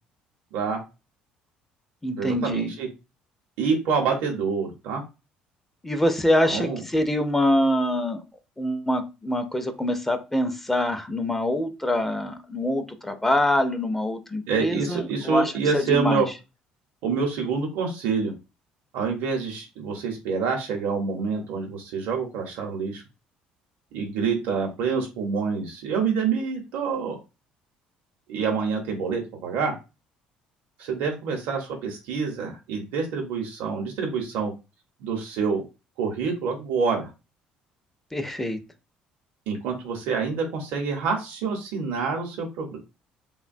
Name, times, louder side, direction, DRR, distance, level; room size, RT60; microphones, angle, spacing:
voice 1, 0.5-0.8 2.2-2.9 3.6-5.0 6.4-6.8 14.5-16.3 17.0-18.3 18.9-23.0 23.9-27.2 28.3-29.7 30.8-34.5 35.0-35.6 36.0-37.1 39.5-42.8, right 5 dB, 85° right, 1 dB, 0.7 m, -27 dB
voice 2, 2.0-2.7 5.8-8.2 8.6-16.2 38.1-38.6, left 1 dB, 10° left, 7 dB, 0.4 m, -25 dB
3.2 x 2.1 x 2.5 m, 0.28 s
cardioid pair, 130°, 3 cm